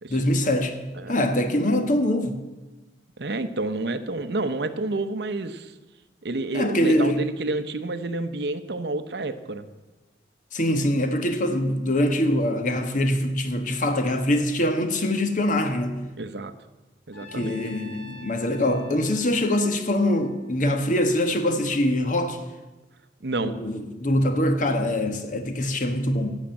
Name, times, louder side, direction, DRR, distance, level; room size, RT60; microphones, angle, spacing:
voice 1, 0.1-0.8 1.1-2.4 6.5-7.3 10.5-16.0 17.2-22.4 23.4-26.3, left 1 dB, 45° left, 1.2 m, -23 dB
voice 2, 3.2-5.7 6.2-9.7 16.2-16.5 17.1-17.6 23.2-23.5, right 2 dB, 65° right, 0.8 m, -29 dB
Trumpet, 17.1-21.3, left 1 dB, 90° left, 4.3 m, -47 dB
11.5 x 7.4 x 8.7 m
head